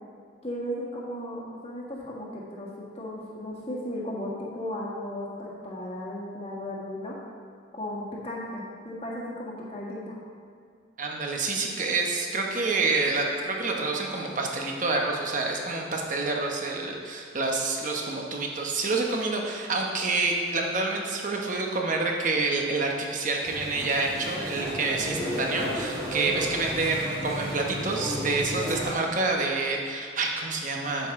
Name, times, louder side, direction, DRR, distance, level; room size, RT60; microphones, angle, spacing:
voice 1, 0.4-2.7 2.9-7.1 7.7-10.2, left 1 dB, 30° left, -5 dB, 1.6 m, -35 dB
voice 2, 11.0-31.1, right 3 dB, 40° right, 1 dB, 1.0 m, -28 dB
sound 1, 23.4-28.9, equal, 15° right, 2.0 m, -33 dB
9.1 x 7.9 x 3.7 m, 2.3 s
head